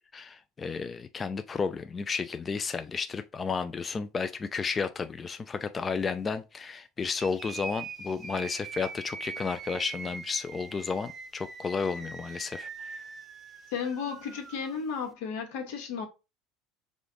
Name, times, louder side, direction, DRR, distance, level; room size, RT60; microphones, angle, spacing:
voice 1, 0.1-13.0, left 5 dB, 20° left, 0.3 m, -32 dB
sound 1, 7.1-15.1, right 5 dB, 25° right, 0.7 m, -42 dB
voice 2, 13.7-16.1, left 6 dB, 80° left, 1.2 m, -34 dB
4.9 x 2.4 x 3.8 m
supercardioid pair, 130°, 0 cm